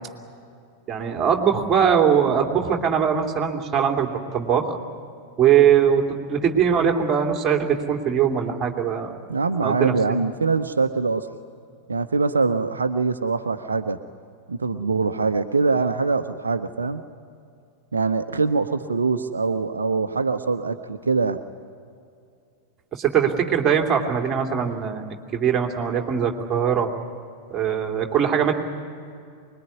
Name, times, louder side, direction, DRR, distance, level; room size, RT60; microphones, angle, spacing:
voice 1, 0.9-4.7 5.4-9.1 9.6-10.2 22.9-25.0 25.3-26.9 27.5-28.5, right 8 dB, 25° right, 2 dB, 2.8 m, -21 dB
voice 2, 9.3-11.3 11.9-14.0 14.5-17.0 17.9-21.4, right 4 dB, 75° right, 8 dB, 0.8 m, -23 dB
25.0 x 21.5 x 9.7 m, 2.4 s
figure-of-eight pair, 90°, 0 cm